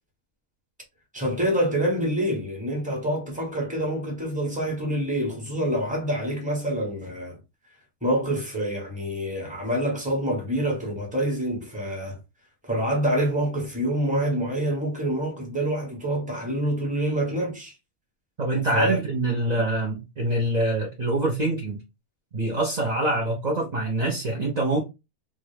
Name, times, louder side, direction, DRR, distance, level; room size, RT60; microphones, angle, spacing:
voice 1, 1.1-7.4 8.0-12.2 12.6-17.7 18.7-19.0 19.4-19.5, right 1 dB, 5° right, 1.0 m, -26 dB
voice 2, 18.4-21.8 22.3-24.8, right 2 dB, 45° right, 0.5 m, -25 dB
2.8 x 2.5 x 3.2 m
omnidirectional pair, 1.6 m